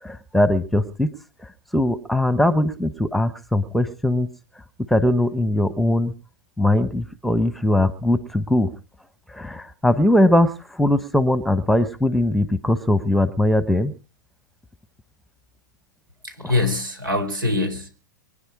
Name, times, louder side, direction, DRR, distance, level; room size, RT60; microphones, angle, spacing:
voice 1, 0.0-1.1 1.7-4.3 4.9-6.1 6.6-8.7 9.3-13.9, left 1 dB, ahead, 12 dB, 1.1 m, -20 dB
voice 2, 16.2-17.9, left 2 dB, 90° right, 10 dB, 4.5 m, -23 dB
24.5 x 10.5 x 4.8 m, 0.38 s
hypercardioid pair, 105°, 11 cm